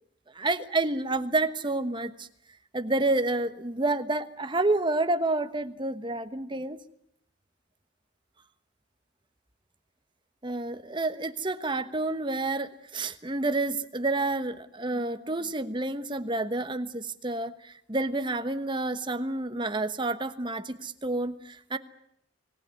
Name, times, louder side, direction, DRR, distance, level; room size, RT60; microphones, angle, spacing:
voice 1, 0.3-2.3 2.7-6.8 10.4-21.8, right 2 dB, 25° right, 10 dB, 1.1 m, -29 dB
25.0 x 18.5 x 9.5 m, 0.76 s
head